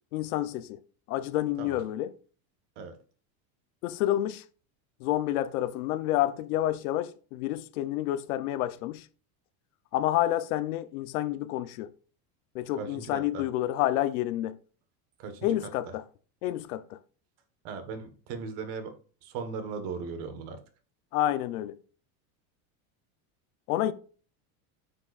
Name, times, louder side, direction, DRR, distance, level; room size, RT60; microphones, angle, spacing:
voice 1, 0.1-0.8 1.1-2.1 3.8-4.4 5.0-9.1 9.9-11.9 12.5-14.6 15.4-16.0 16.4-17.0 21.1-21.8 23.7-23.9, left 13 dB, 80° left, 0.9 m, -29 dB
voice 2, 12.8-13.4 15.2-15.5 17.6-18.9 19.2-20.6, right 5 dB, 50° right, 1.6 m, -38 dB
8.9 x 7.0 x 2.6 m
cardioid pair, 180°, 42 cm